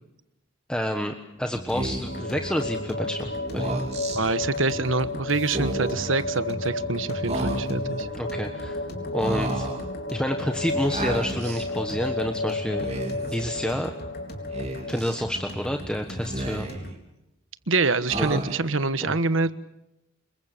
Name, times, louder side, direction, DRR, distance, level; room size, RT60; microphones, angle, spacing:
voice 1, 0.7-3.8 8.1-8.8 9.1-9.7 10.1-12.9 13.3-13.9 14.9-16.7 18.1-18.4 19.0-19.2, equal, 5° left, 4 dB, 1.3 m, -29 dB
sound 1, 1.5-16.9, equal, 50° left, 4.0 m, -39 dB
Speech, 1.7-2.2 3.4-4.2 5.4-6.1 7.3-8.0 9.2-9.9 10.9-11.7 12.7-13.4 14.5-15.2 16.1-16.9 18.1-18.8, right 1 dB, 35° right, 3.7 m, -32 dB
sound 2, 2.1-15.0, left 2 dB, 70° left, 3.1 m, -33 dB
voice 2, 4.1-8.1 17.7-19.5, right 3 dB, 70° right, 13 dB, 1.3 m, -25 dB
27.0 x 22.5 x 6.8 m, 0.86 s
head